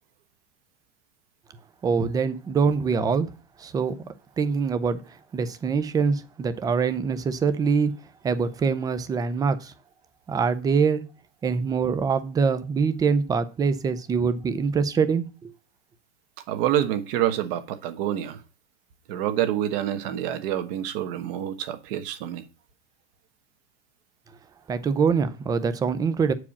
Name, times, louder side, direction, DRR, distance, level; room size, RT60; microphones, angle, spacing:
voice 1, 1.8-3.3 3.6-5.0 5.3-7.9 8.2-9.7 10.3-11.0 11.4-15.5 24.7-26.3, right 5 dB, 10° right, 0.5 m, -24 dB
voice 2, 16.5-18.4 19.1-22.4, right 11 dB, 55° right, 1.3 m, -27 dB
8.4 x 4.8 x 7.1 m
supercardioid pair, 155°, 34 cm